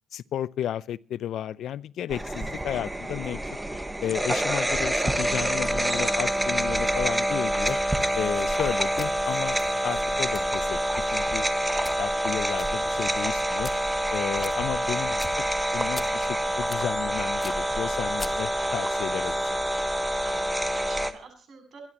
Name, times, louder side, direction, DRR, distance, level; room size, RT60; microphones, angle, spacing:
voice 1, 0.1-3.4 4.0-7.8 8.1-10.8 11.1-11.5 12.0-13.7 14.1-15.3 15.7-19.6, left 11 dB, 75° left, 0.5 m, -33 dB
sound 1, 2.1-21.1, right 1 dB, 10° right, 1.4 m, -27 dB
sound 2, 7.6-18.8, left 1 dB, 10° left, 1.7 m, -45 dB
voice 2, 20.2-21.8, right 5 dB, 60° right, 7.7 m, -48 dB
26.0 x 11.5 x 3.0 m
cardioid pair, 90°, 0 cm